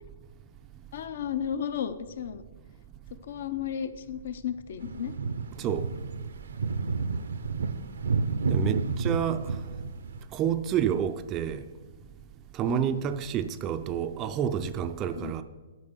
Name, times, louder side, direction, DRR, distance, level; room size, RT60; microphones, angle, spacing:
voice 1, 0.9-2.4 3.3-5.1 12.6-13.1 15.1-15.3, left 9 dB, 60° left, 0.7 m, -34 dB
sound 1, 4.8-10.3, right 4 dB, 85° right, 0.6 m, -30 dB
voice 2, 5.6-5.9 8.5-9.6 10.3-11.7 12.5-15.4, right 9 dB, 20° right, 0.4 m, -29 dB
8.6 x 6.1 x 6.5 m
hypercardioid pair, 155°, 0 cm